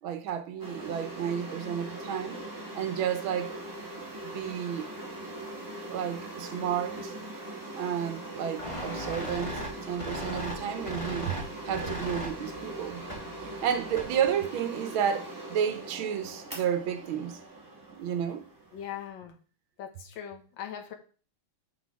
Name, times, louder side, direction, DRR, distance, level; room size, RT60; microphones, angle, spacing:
voice 1, 0.0-2.5 2.7-3.6 4.2-4.9 5.9-7.1 7.7-9.6 9.9-13.0 13.4-17.4 17.9-18.5, right 8 dB, 85° right, 1.7 m, -31 dB
sound 1, 0.6-19.1, right 1 dB, 10° right, 2.2 m, -41 dB
sound 2, 8.6-14.3, equal, 15° left, 1.8 m, -38 dB
voice 2, 18.7-19.4 19.8-20.9, left 9 dB, 70° left, 1.9 m, -40 dB
6.4 x 5.5 x 4.7 m
omnidirectional pair, 2.2 m